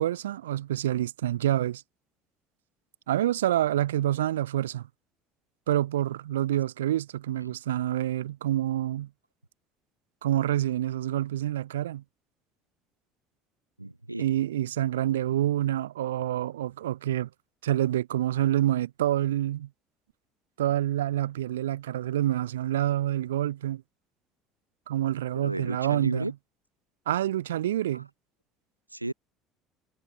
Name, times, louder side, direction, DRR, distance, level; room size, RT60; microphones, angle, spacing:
voice 1, 0.0-1.8 3.1-4.9 5.7-9.1 10.2-12.0 14.2-17.3 17.6-19.7 20.6-23.8 24.9-26.3 27.1-28.1, right 12 dB, 70° right, 0.6 m, -27 dB
voice 2, 13.8-14.2 25.3-26.3 27.9-28.0 28.9-29.1, right 2 dB, 85° right, 0.9 m, -33 dB
figure-of-eight pair, 60°, 0 cm